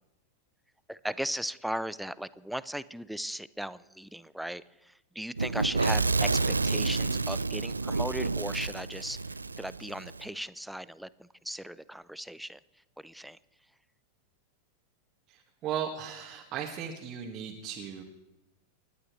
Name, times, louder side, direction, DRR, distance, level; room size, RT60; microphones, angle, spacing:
voice 1, 0.9-4.6 5.2-9.2 9.6-11.1 11.4-12.6 13.0-13.4, right 1 dB, ahead, 17 dB, 0.5 m, -37 dB
Fire / Explosion, 5.4-10.2, right 3 dB, 80° right, 0.4 m, -29 dB
voice 2, 15.3-18.0, right 8 dB, 35° right, -1 dB, 1.9 m, -36 dB
29.0 x 12.0 x 3.2 m, 0.97 s
figure-of-eight pair, 90°, 0 cm